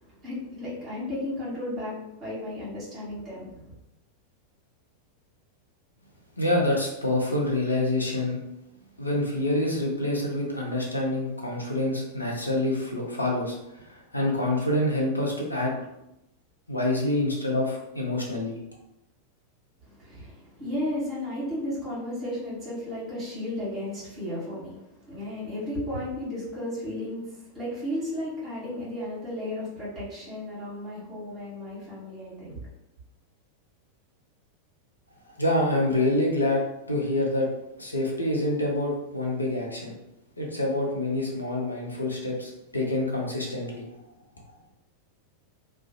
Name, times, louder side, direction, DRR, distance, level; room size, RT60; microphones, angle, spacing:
voice 1, 0.0-3.7 19.8-32.7, left 1 dB, 30° right, -7 dB, 1.1 m, -34 dB
voice 2, 6.4-8.4 9.0-15.7 16.7-18.6 35.4-37.5 37.8-39.9 40.4-43.8, left 1 dB, 85° left, -2 dB, 0.6 m, -27 dB
2.4 x 2.2 x 2.6 m, 0.86 s
figure-of-eight pair, 90°, 0 cm